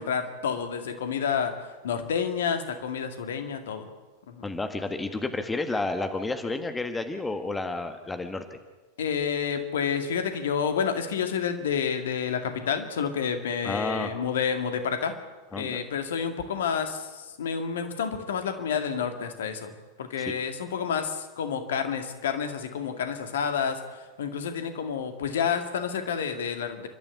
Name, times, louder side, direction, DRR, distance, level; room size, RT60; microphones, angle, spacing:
voice 1, 0.0-1.5 1.8-3.9 4.3-4.5 9.0-15.1 15.5-19.7 20.0-26.9, left 7 dB, 60° left, 7 dB, 2.2 m, -29 dB
voice 2, 4.4-8.6 13.6-14.1 15.5-15.8 20.2-20.3, left 2 dB, 10° left, 7 dB, 1.6 m, -31 dB
29.0 x 13.0 x 8.4 m, 1.2 s
figure-of-eight pair, 90°, 0 cm